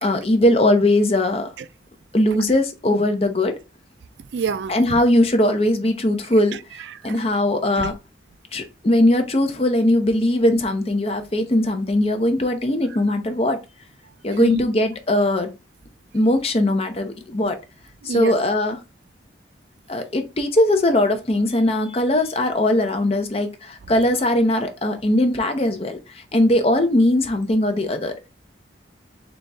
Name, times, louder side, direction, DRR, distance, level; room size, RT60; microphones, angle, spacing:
voice 1, 0.0-1.5 2.1-3.5 4.7-6.6 7.0-7.9 8.5-13.6 14.2-15.5 16.1-17.6 18.0-18.8 19.9-28.2, left 1 dB, 30° left, 0.6 m, -20 dB
voice 2, 4.2-5.0 6.5-7.2 7.8-7.9 14.3-14.6 18.0-18.4, right 5 dB, 70° right, 0.3 m, -28 dB
4.0 x 3.0 x 3.4 m
head